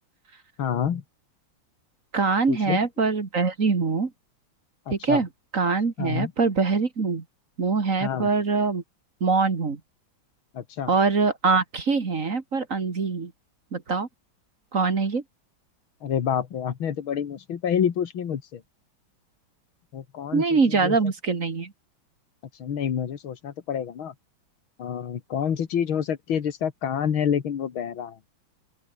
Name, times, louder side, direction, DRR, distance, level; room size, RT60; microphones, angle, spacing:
voice 1, 0.6-1.0 2.5-2.8 4.9-5.2 6.0-6.3 8.0-8.3 10.5-10.9 16.0-18.6 19.9-21.0 22.6-24.1 24.8-28.2, left 8 dB, 90° left, 2.5 m, -28 dB
voice 2, 2.1-4.1 4.9-7.2 7.6-8.8 9.2-9.8 10.9-13.3 13.7-14.1 14.7-15.2 20.3-21.7, right 4 dB, 40° right, 2.3 m, -23 dB
open air
omnidirectional pair, 2.2 m